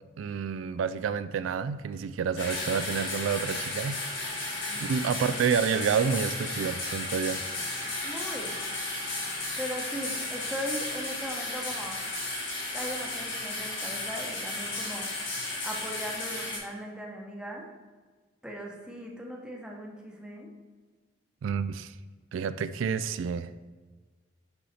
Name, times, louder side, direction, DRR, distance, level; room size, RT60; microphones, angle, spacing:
voice 1, 0.2-4.0 4.8-7.4 21.4-21.9 22.3-23.5, right 6 dB, 85° right, 13 dB, 0.3 m, -29 dB
sound 1, 2.4-16.6, left 2 dB, 75° left, 1.9 m, -34 dB
voice 2, 4.7-5.1 8.0-8.6 9.6-12.0 12.7-15.1 15.6-17.7 18.4-20.5, equal, 5° right, 0 dB, 0.9 m, -38 dB
5.6 x 5.6 x 4.2 m, 1.4 s
head